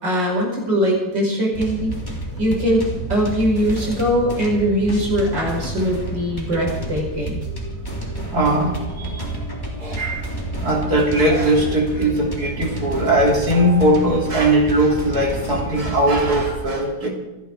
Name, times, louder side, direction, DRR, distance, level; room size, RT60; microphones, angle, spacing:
voice 1, 0.0-1.9 2.4-7.4, equal, 85° right, -2 dB, 6.0 m, -21 dB
sound 1, 1.5-16.6, right 2 dB, 10° left, 3.3 m, -30 dB
voice 2, 8.3-9.4 9.8-10.3 10.6-17.1, right 1 dB, 55° right, 0 dB, 3.7 m, -19 dB
27.5 x 10.0 x 4.8 m, 1.0 s
omnidirectional pair, 1.9 m